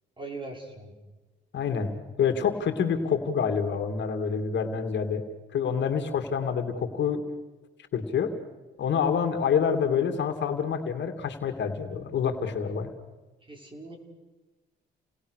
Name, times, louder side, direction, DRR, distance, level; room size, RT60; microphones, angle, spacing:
voice 1, 0.2-0.9 13.5-14.0, right 3 dB, 25° right, 3 dB, 5.6 m, -40 dB
voice 2, 1.5-1.9 2.2-5.2 5.5-7.2 7.9-8.3 8.8-12.9, left 7 dB, 65° left, 6 dB, 2.6 m, -27 dB
30.0 x 20.0 x 6.5 m, 1.2 s
cardioid pair, 90°, 20 cm